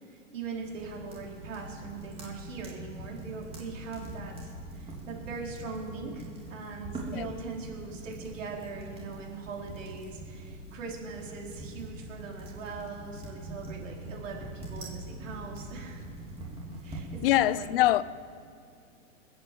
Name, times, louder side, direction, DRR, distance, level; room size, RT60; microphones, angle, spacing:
voice 1, 0.0-16.1 16.8-17.9, right 4 dB, 75° right, 4.5 m, -41 dB
sound 1, 0.6-17.4, right 1 dB, 15° right, 3.6 m, -43 dB
voice 2, 17.2-18.0, left 15 dB, 45° left, 0.6 m, -23 dB
20.0 x 9.3 x 7.7 m
hypercardioid pair, 145°, 39 cm